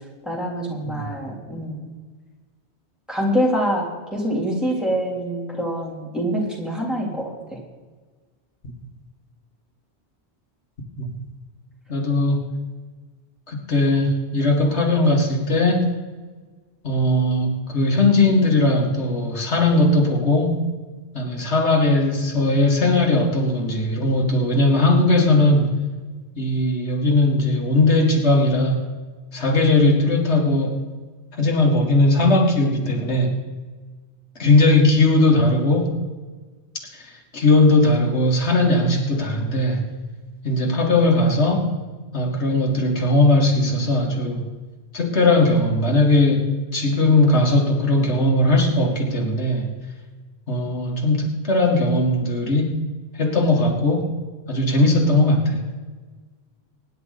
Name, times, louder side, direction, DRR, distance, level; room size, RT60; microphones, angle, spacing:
voice 1, 0.2-1.9 3.1-7.6, equal, ahead, -4 dB, 3.3 m, -25 dB
voice 2, 11.9-12.5 13.5-15.9 16.8-20.7 21.1-25.8 26.4-28.9 29.3-30.8 31.4-33.4 34.4-35.9 36.9-39.9 40.4-41.7 42.1-44.5 44.9-49.7 50.5-52.8 53.2-54.1 54.5-55.6, left 2 dB, 85° left, 0 dB, 2.2 m, -19 dB
23.5 x 10.5 x 4.1 m, 1.4 s
omnidirectional pair, 1.1 m